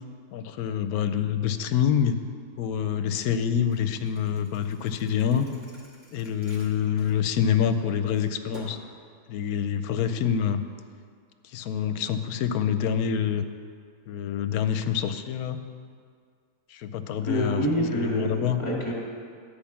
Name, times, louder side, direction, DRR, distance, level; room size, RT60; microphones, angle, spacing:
voice 1, 0.3-2.2 2.6-5.4 6.1-8.8 9.3-10.6 11.4-13.5 14.1-15.6 16.7-17.7 17.9-18.6, left 8 dB, 80° left, 10 dB, 1.0 m, -26 dB
Thump thud, 3.7-7.7 8.1-8.9, equal, 40° right, 1.9 m, -50 dB
voice 2, 17.2-18.9, equal, 20° left, -3 dB, 1.8 m, -27 dB
10.0 x 5.2 x 7.1 m, 2.1 s
omnidirectional pair, 1.6 m